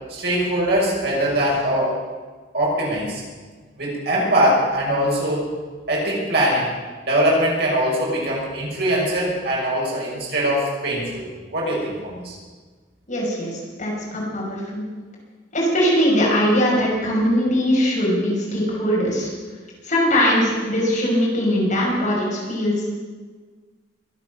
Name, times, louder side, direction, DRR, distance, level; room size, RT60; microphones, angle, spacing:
voice 1, 0.1-2.0 2.5-3.2 3.8-5.5 5.9-6.7 7.0-11.3 11.5-12.3, right 1 dB, 65° right, -4 dB, 6.0 m, -22 dB
voice 2, 13.1-14.9 15.5-19.3 19.8-22.9, equal, 45° left, -4 dB, 5.9 m, -21 dB
23.0 x 8.6 x 6.6 m, 1.4 s
head